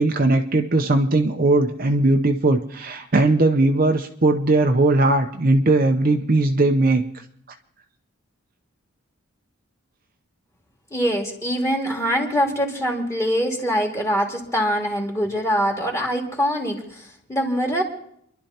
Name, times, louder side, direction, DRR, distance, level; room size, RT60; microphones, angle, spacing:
voice 1, 0.0-7.0, right 2 dB, 40° right, 4 dB, 0.7 m, -19 dB
voice 2, 10.9-17.8, equal, 15° left, 0 dB, 2.2 m, -23 dB
29.0 x 11.5 x 2.9 m, 0.70 s
head